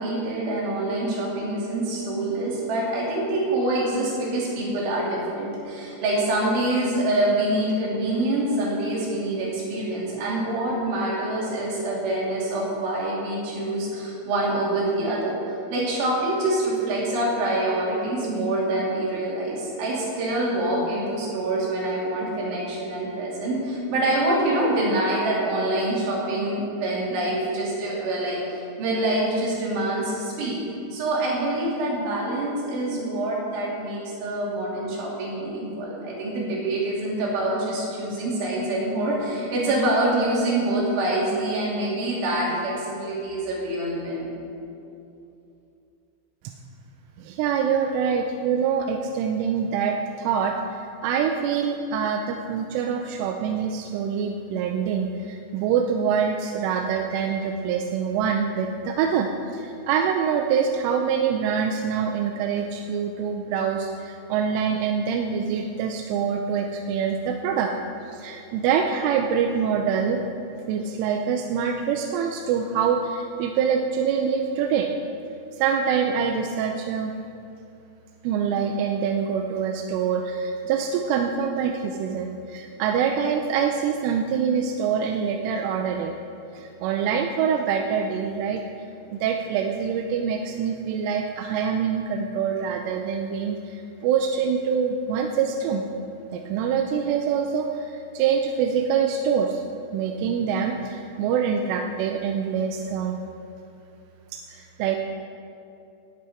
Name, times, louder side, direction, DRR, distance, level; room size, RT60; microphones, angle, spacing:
voice 1, 0.0-15.4 15.7-30.6 30.9-44.3, right 1 dB, 65° right, -5 dB, 5.3 m, -25 dB
voice 2, 47.2-50.8 51.0-67.7 68.1-70.2 70.7-74.9 75.6-77.1 78.2-86.1 86.5-88.6 89.1-95.9 96.3-99.6 99.9-103.2 104.5-105.0, right 7 dB, 80° right, 3 dB, 3.0 m, -25 dB
19.0 x 9.8 x 4.4 m, 2.7 s
omnidirectional pair, 6.0 m